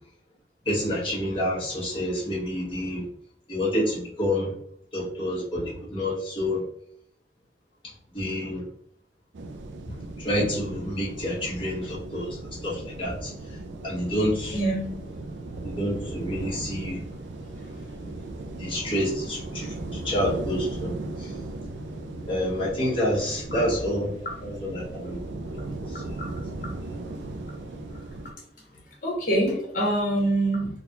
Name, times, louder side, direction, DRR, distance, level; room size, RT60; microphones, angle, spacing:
voice 1, 0.7-3.0 3.5-4.5 4.9-6.6 8.1-8.6 10.2-12.4 12.6-13.3 13.8-14.5 15.6-17.0 18.6-19.7 20.0-20.9 22.3-24.1 24.4-25.6, left 1 dB, 30° left, -6 dB, 1.3 m, -28 dB
sound 1, 9.3-28.3, right 2 dB, 85° right, 0.4 m, -37 dB
voice 2, 14.5-14.9 16.4-16.5 17.6-17.8 23.5-23.6 26.2-26.3 29.0-30.7, right 1 dB, 50° left, -2 dB, 1.4 m, -25 dB
3.9 x 2.3 x 2.9 m, 0.67 s
head